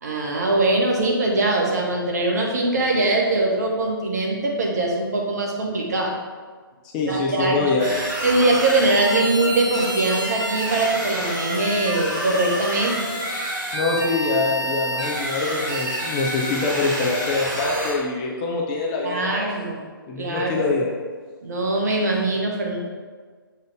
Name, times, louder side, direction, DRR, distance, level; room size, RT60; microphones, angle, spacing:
voice 1, 0.0-6.1 7.1-7.6 8.2-13.0 19.0-19.8 20.2-20.7 21.4-22.8, right 2 dB, 45° right, 0 dB, 1.4 m, -22 dB
voice 2, 6.8-7.9 13.7-19.7 20.1-20.9, left 3 dB, 20° left, -1 dB, 0.7 m, -24 dB
sound 1, 7.8-17.9, right 1 dB, 20° right, 1.9 m, -28 dB
6.9 x 3.9 x 5.0 m, 1.5 s
figure-of-eight pair, 135°, 12 cm